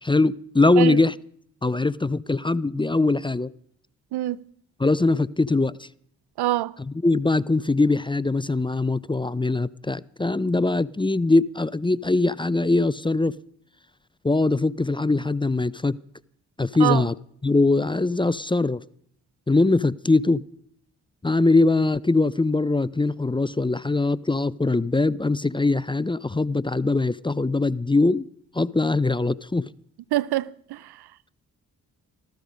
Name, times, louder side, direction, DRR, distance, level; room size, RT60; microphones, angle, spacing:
voice 1, 0.0-1.2 1.6-3.5 4.8-5.9 6.8-13.3 14.2-16.0 16.6-17.2 17.4-18.8 19.5-20.4 21.2-28.3 28.5-29.7, left 2 dB, 15° left, 0.5 m, -22 dB
voice 2, 6.4-6.7 16.8-17.0 30.1-30.8, right 15 dB, 80° right, 0.6 m, -24 dB
14.5 x 14.0 x 5.1 m
supercardioid pair, 45°, 38 cm